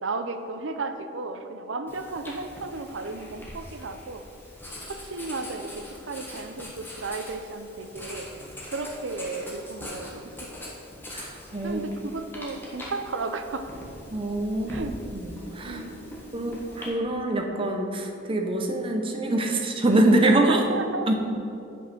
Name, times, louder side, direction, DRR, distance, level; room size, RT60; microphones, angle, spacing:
voice 1, 0.0-4.3 4.8-8.3 8.7-10.8 11.6-13.6 14.7-14.9 15.6-16.6 20.3-21.1, right 3 dB, 75° right, 8 dB, 0.6 m, -34 dB
Writing, 1.9-16.9, left 1 dB, 10° left, 1.3 m, -42 dB
voice 2, 11.1-11.8 14.1-14.8 15.1-15.8 16.3-20.6 21.1-21.2, right 2 dB, 25° right, 2 dB, 0.8 m, -24 dB
8.5 x 5.4 x 6.1 m, 2.8 s
head